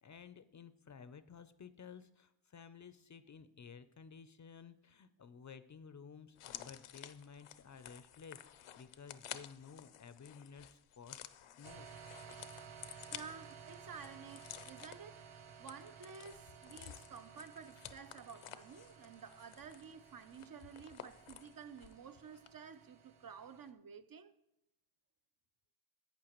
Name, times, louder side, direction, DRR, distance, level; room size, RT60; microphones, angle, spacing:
voice 1, 0.0-8.4 8.8-11.3 11.6-11.9, left 6 dB, 40° left, 0.4 m, -54 dB
sound 1, 6.3-22.0 22.3-22.5, left 11 dB, 85° left, 0.6 m, -53 dB
sound 2, 11.6-23.7, right 7 dB, 75° right, 0.9 m, -56 dB
voice 2, 13.1-15.3 15.6-24.3, right 6 dB, 45° right, 0.5 m, -52 dB
11.5 x 8.8 x 3.0 m
wide cardioid pair, 120°, 49 cm